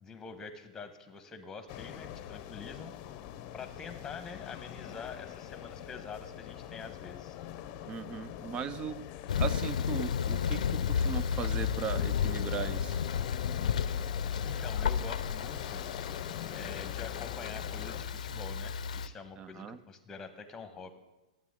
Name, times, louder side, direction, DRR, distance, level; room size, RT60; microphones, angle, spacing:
voice 1, 0.0-2.9 3.5-7.4 14.4-15.8 16.5-20.9, left 5 dB, 15° left, 9 dB, 1.1 m, -46 dB
sound 1, 1.7-18.0, left 11 dB, 40° left, 0.7 m, -44 dB
voice 2, 7.9-9.0 9.4-13.0 19.4-19.8, right 7 dB, 25° right, 16 dB, 0.4 m, -38 dB
Thunder, 9.3-19.1, left 7 dB, 80° left, 0.5 m, -32 dB
14.5 x 9.3 x 3.7 m, 1.1 s
hypercardioid pair, 130°, 4 cm